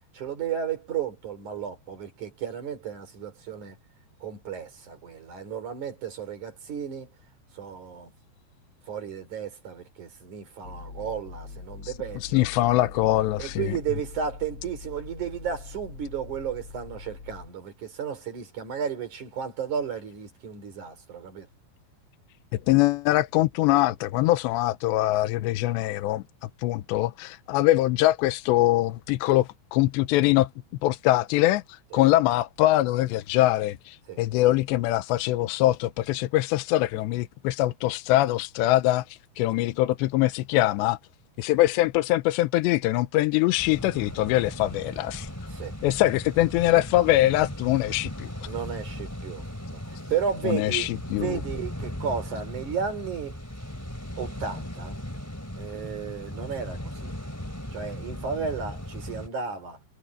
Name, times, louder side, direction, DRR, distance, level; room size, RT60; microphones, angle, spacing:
voice 1, 0.1-3.8 4.2-7.1 7.5-8.1 8.9-12.5 13.4-21.5 31.9-32.0 34.1-34.2 45.5-45.7 48.4-50.9 51.2-53.4 54.2-54.9 55.5-57.1 57.7-59.8, right 7 dB, 45° right, 4.9 m, -33 dB
sound 1, 10.6-17.5, left 4 dB, 35° left, 2.8 m, -43 dB
voice 2, 12.2-13.7 22.7-26.2 26.6-30.5 30.8-41.0 41.4-45.3 45.8-48.3 50.4-51.4, left 16 dB, 85° left, 2.9 m, -23 dB
sound 2, 43.6-59.3, equal, 5° left, 1.8 m, -37 dB
omnidirectional pair, 5.2 m